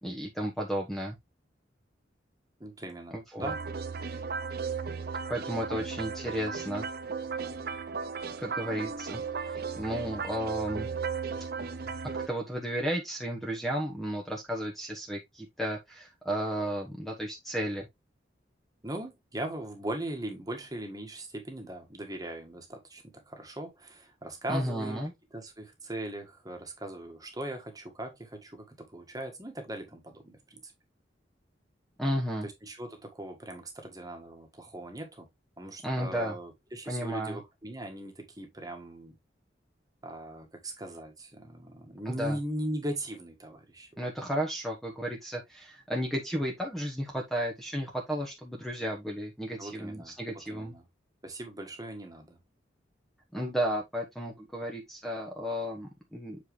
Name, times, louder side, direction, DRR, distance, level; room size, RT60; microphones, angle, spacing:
voice 1, 0.0-1.2 3.1-3.5 5.3-6.8 8.4-10.9 12.3-17.9 24.5-25.1 32.0-32.5 35.8-36.3 36.9-37.4 42.0-42.4 44.0-50.7 53.3-56.4, equal, ahead, 1.2 m, -33 dB
voice 2, 2.6-3.6 18.8-25.0 25.3-30.7 32.4-35.3 35.6-39.2 40.0-44.1 49.6-50.1 50.5-50.8 51.2-52.4, right 1 dB, 20° right, 1.7 m, -39 dB
sound 1, 3.4-12.3, right 5 dB, 60° right, 0.8 m, -35 dB
7.5 x 4.6 x 3.2 m
head